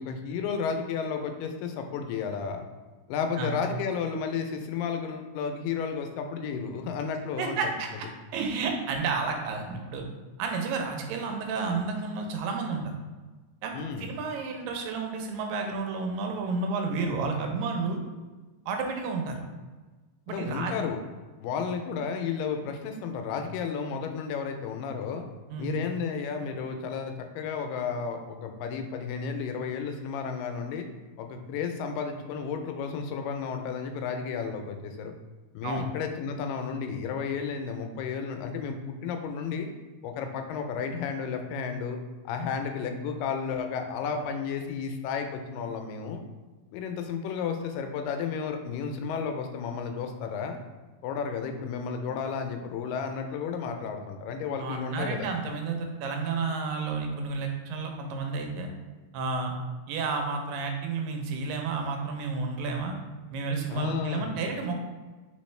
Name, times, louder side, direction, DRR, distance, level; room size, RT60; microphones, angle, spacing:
voice 1, 0.0-2.6 3.1-7.8 13.7-14.1 20.3-21.0 21.4-25.2 25.6-30.9 31.2-35.1 35.5-39.7 40.0-42.0 42.3-46.2 46.7-50.6 51.0-55.3 63.7-64.4, left 6 dB, 90° left, 5 dB, 2.2 m, -32 dB
voice 2, 7.4-8.1 8.3-10.1 10.4-12.9 13.6-13.7 14.0-18.0 18.7-19.4 20.3-20.7 25.5-25.7 35.6-35.9 54.6-58.7 59.1-59.5 59.9-63.0 63.3-64.8, right 4 dB, 85° right, 3 dB, 2.4 m, -31 dB
4.7 x 3.5 x 3.1 m, 1.3 s
omnidirectional pair, 3.8 m